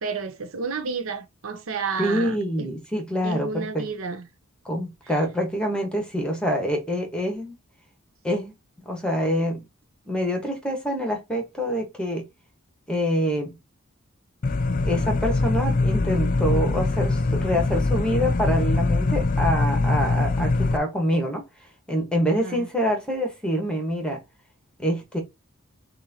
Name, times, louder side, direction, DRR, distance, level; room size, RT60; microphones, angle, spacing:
voice 1, 0.0-2.7 3.2-4.2 22.4-22.7, right 5 dB, 80° right, 0.7 m, -31 dB
voice 2, 2.0-3.9 4.6-7.5 8.2-8.5 8.8-9.6 10.1-12.2 12.9-13.5 14.8-21.4 21.9-24.2 24.8-25.2, equal, 5° left, 1.3 m, -26 dB
sound 1, 14.4-20.8, left 3 dB, 40° left, 0.4 m, -23 dB
5.9 x 2.6 x 2.8 m
head